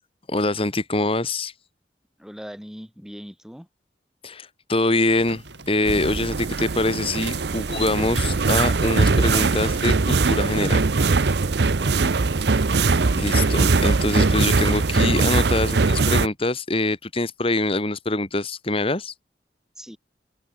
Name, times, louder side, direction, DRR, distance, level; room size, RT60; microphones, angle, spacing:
voice 1, 0.3-1.5 4.2-10.8 13.1-19.1, left 2 dB, 30° left, 1.9 m, -24 dB
voice 2, 2.2-3.7 19.8-20.0, equal, 5° right, 2.6 m, -40 dB
sound 1, 5.1-15.4, right 3 dB, 85° right, 5.1 m, -40 dB
sound 2, 5.9-16.3, right 4 dB, 70° right, 0.7 m, -21 dB
open air
head